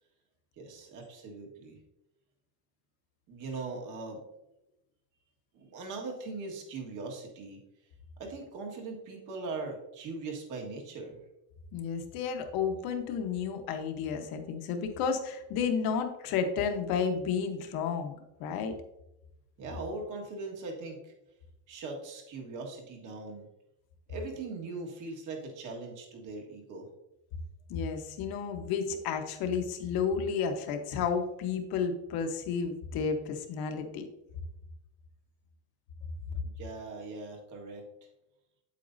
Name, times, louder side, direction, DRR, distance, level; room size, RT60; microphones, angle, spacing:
voice 1, 0.6-1.8 3.3-4.2 5.5-7.6 8.2-11.2 19.6-21.1 21.7-23.5 24.1-26.9 36.4-37.8, right 3 dB, 45° right, 1 dB, 1.8 m, -40 dB
voice 2, 11.7-18.1 18.4-18.7 27.7-34.1, left 6 dB, 55° left, 6 dB, 1.2 m, -32 dB
8.5 x 8.4 x 2.7 m, 0.90 s
cardioid pair, 170°, 43 cm